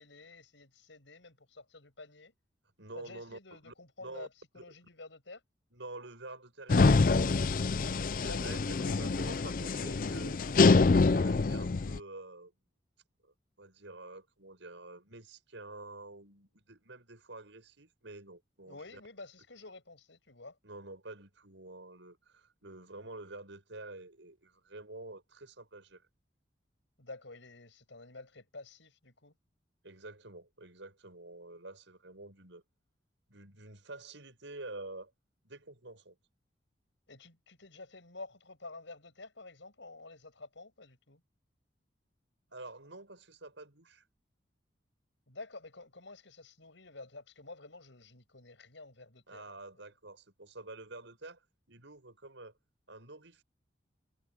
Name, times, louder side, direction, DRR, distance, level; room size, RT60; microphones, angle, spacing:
voice 1, 0.0-2.3 2.9-5.4 8.2-8.6 18.7-20.6 27.0-29.3 37.1-41.2 45.3-49.9, left 3 dB, 90° left, 7.1 m, -50 dB
voice 2, 2.8-3.7 4.0-4.3 4.5-4.6 5.7-7.2 8.1-10.4 11.0-12.5 13.2-19.0 20.6-26.0 29.8-32.6 33.3-35.1 35.4-36.2 42.5-44.0 49.3-52.5 52.9-53.4, right 2 dB, 90° right, 7.4 m, -48 dB
sound 1, 6.7-12.0, left 3 dB, 45° left, 0.5 m, -26 dB
head